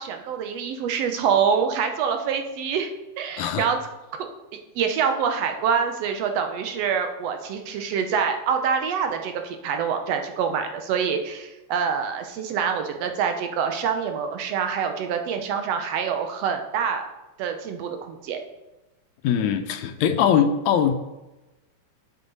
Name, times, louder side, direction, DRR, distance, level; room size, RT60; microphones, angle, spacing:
voice 1, 0.0-2.9 3.2-3.8 4.7-17.1 17.4-18.4, right 7 dB, 70° right, 5 dB, 1.7 m, -25 dB
voice 2, 3.4-3.7 19.2-20.9, left 8 dB, 85° left, 9 dB, 2.0 m, -21 dB
9.1 x 7.1 x 4.0 m, 1.0 s
omnidirectional pair, 3.3 m